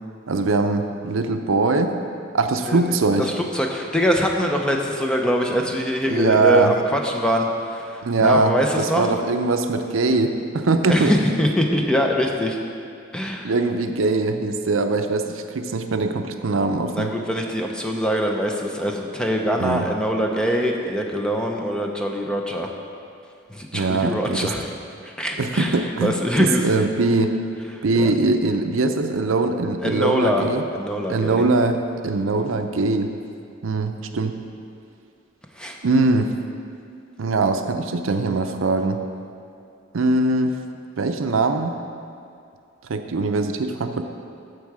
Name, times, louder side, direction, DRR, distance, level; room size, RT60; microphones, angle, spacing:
voice 1, 0.3-1.9 2.3-3.3 6.1-6.7 8.0-11.1 13.4-17.1 19.6-19.9 23.7-24.5 25.4-27.4 27.8-30.6 31.1-33.1 33.6-34.4 35.8-36.4 37.2-39.0 39.9-40.6 41.0-41.7 42.9-44.0, right 3 dB, 80° right, 6 dB, 0.6 m, -21 dB
voice 2, 3.4-9.1 10.9-12.6 13.1-13.5 16.9-22.7 23.5-24.7 25.0-25.7 26.0-26.6 28.0-28.1 29.8-30.5 30.7-31.4 35.6-35.8, equal, 5° left, 1 dB, 0.6 m, -23 dB
13.5 x 4.7 x 4.8 m, 2.4 s
head